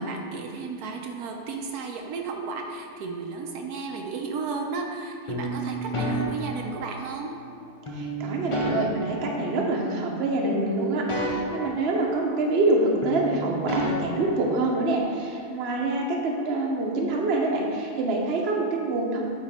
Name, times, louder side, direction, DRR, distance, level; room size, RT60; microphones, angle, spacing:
voice 1, 0.0-7.3, right 4 dB, 80° right, 2 dB, 1.1 m, -33 dB
sound 1, 5.3-7.3 7.9-10.2 10.4-12.8 13.0-15.1, right 1 dB, 35° left, 0.5 m, -31 dB
voice 2, 7.9-19.3, right 2 dB, 50° right, 0 dB, 1.0 m, -26 dB
9.0 x 3.6 x 4.2 m, 2.4 s
omnidirectional pair, 1.6 m